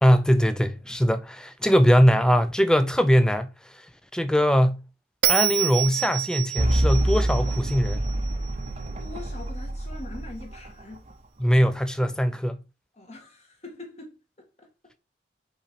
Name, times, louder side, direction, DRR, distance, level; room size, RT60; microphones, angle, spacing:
voice 1, 0.0-3.5 4.1-4.8 5.3-8.1 11.4-12.6, equal, 5° left, 0.5 m, -21 dB
Bell, 5.2-8.5, right 13 dB, 75° right, 0.9 m, -28 dB
sound 1, 6.6-11.1, right 1 dB, 35° right, 0.8 m, -26 dB
voice 2, 9.0-11.1 12.9-14.7, left 2 dB, 35° left, 1.9 m, -43 dB
5.5 x 4.3 x 5.1 m
head